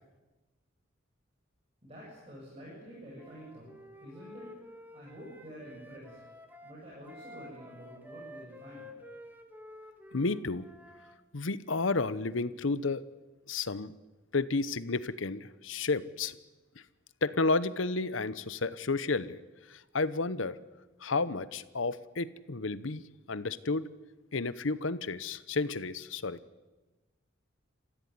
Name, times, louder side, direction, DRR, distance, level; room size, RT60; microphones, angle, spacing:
voice 1, 1.8-3.7 4.0-4.6 4.9-6.2 6.6-8.9, equal, 30° right, -5 dB, 7.8 m, -48 dB
Wind instrument woodwind instrument, 3.2-11.2, left 1 dB, 10° right, 1.8 m, -51 dB
voice 2, 10.1-10.6 11.3-13.0 13.5-13.9 14.3-16.3 17.2-19.4 19.7-20.6 21.0-23.0 23.3-23.9 24.3-26.4, left 3 dB, 80° left, 16 dB, 0.9 m, -31 dB
28.0 x 15.0 x 9.6 m, 1.2 s
head